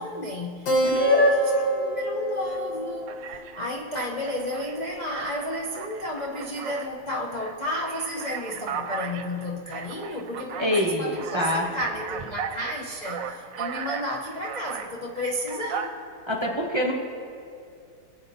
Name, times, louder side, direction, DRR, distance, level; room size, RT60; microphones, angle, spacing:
voice 1, 0.0-16.0, left 1 dB, 65° left, -2 dB, 0.4 m, -32 dB
Keyboard (musical), 0.7-5.6, equal, 80° left, 1.9 m, -31 dB
voice 2, 0.8-1.7 10.6-11.7 16.3-16.9, equal, 25° right, -1 dB, 0.6 m, -23 dB
Alarm, 2.4-2.6 3.1-3.7 4.3-6.9 7.3-14.9 15.4-15.9, right 7 dB, 75° right, 1.3 m, -36 dB
23.0 x 8.3 x 2.7 m, 2.4 s
omnidirectional pair, 2.0 m